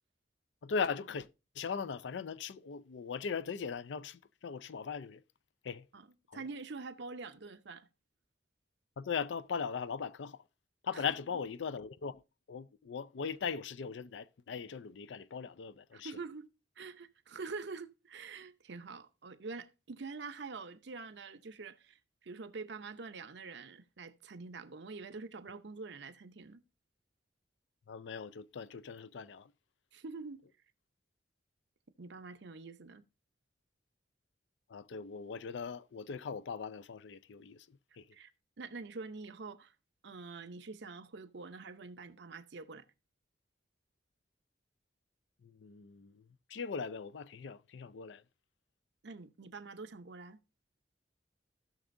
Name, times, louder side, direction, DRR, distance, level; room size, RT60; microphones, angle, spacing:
voice 1, 0.6-1.3 1.6-5.2 5.6-5.8 6.3-6.4 9.0-10.4 10.8-12.2 12.5-16.1 27.9-29.5 34.7-37.7 38.0-38.1 45.4-46.2 46.5-48.2, left 6 dB, 75° left, 0.4 m, -39 dB
voice 2, 6.3-7.9 10.9-11.0 15.9-16.5 16.8-26.6 29.9-30.4 32.0-33.0 38.1-38.3 38.6-39.7 40.0-42.8 49.0-50.4, right 4 dB, 70° right, 0.7 m, -46 dB
16.0 x 6.0 x 2.6 m
head